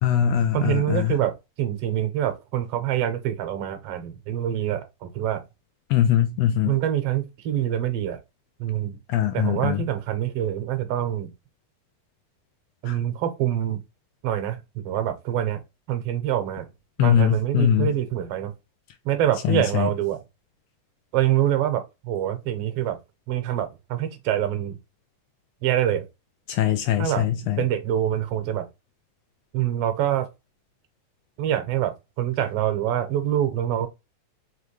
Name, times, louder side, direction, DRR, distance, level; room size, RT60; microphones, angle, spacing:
voice 1, 0.0-1.2 5.9-6.8 9.1-9.9 12.9-13.0 17.0-18.0 19.4-19.9 26.5-27.6, left 10 dB, 80° left, 1.5 m, -22 dB
voice 2, 0.5-1.3 1.6-5.4 6.7-8.2 8.6-9.0 9.3-11.3 12.8-13.8 14.2-15.6 15.9-16.7 17.0-18.5 19.0-20.2 21.1-23.0 23.3-24.8 25.6-26.0 27.0-27.3 27.6-28.7 29.5-30.3 31.4-33.9, right 11 dB, 65° right, 1.7 m, -25 dB
5.0 x 3.1 x 3.2 m
omnidirectional pair, 3.3 m